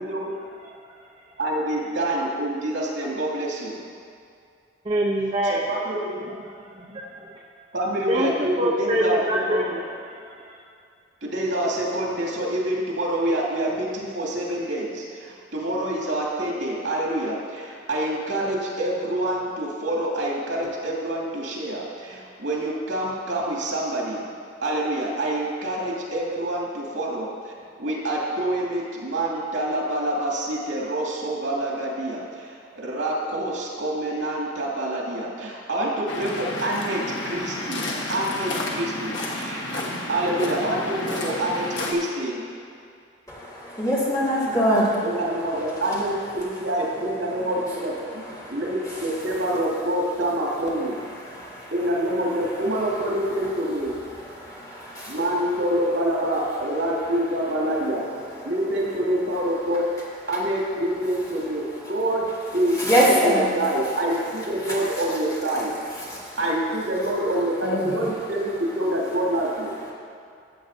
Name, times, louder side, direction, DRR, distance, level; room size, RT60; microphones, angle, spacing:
voice 1, 1.4-3.8 5.4-6.2 7.7-9.8 11.2-24.3 24.6-27.5 27.8-39.8 40.1-42.4 45.0-51.1 51.7-53.9 55.1-58.0 58.4-59.9 60.3-65.7 66.0-69.8, right 1 dB, 85° right, -4 dB, 2.3 m, -26 dB
voice 2, 4.8-5.6 6.3-6.4 6.7-7.4 8.1-10.6, right 1 dB, 30° right, -3 dB, 0.7 m, -26 dB
Waves surf, 36.1-41.9, left 1 dB, 70° left, 1.4 m, -31 dB
voice 3, 43.3-46.2 47.3-49.1 51.1-52.4 52.7-53.0 54.1-55.2 56.7-57.1 57.7-57.8 58.4-58.5 59.7-59.8 60.3-60.4 62.7-63.5 64.1-64.2 64.6-65.2 65.9-66.4 67.6-68.1, equal, 20° left, -7 dB, 2.1 m, -27 dB
15.0 x 8.0 x 2.7 m, 2.4 s
head